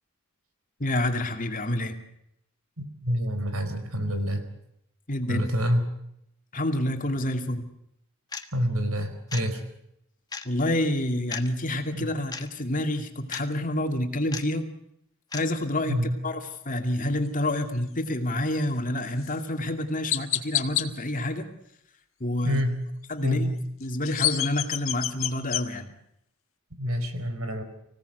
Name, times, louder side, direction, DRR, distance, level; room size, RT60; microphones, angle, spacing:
voice 1, 0.8-2.0 5.1-5.4 6.5-7.7 10.4-14.7 15.3-16.0 16.2-16.4 16.7-21.4 22.2-22.6 23.1-23.5 23.8-25.9, left 1 dB, 40° left, 5 dB, 2.5 m, -28 dB
voice 2, 2.8-4.4 5.3-5.8 8.5-9.6 11.9-12.1 15.8-16.1 22.4-22.8 23.2-23.5 26.8-27.6, equal, 80° right, 8 dB, 4.6 m, -27 dB
sound 1, 8.3-8.5 9.3-9.5 10.3-10.4 11.3-11.5 12.3-12.5 13.3-13.5 14.3-14.4 15.3-15.4, left 5 dB, 20° left, 1.4 m, -35 dB
Chirp tweet, 19.2-19.3 20.1-20.9 23.8-25.6, left 13 dB, 65° left, 1.5 m, -27 dB
25.5 x 17.5 x 8.0 m, 0.79 s
head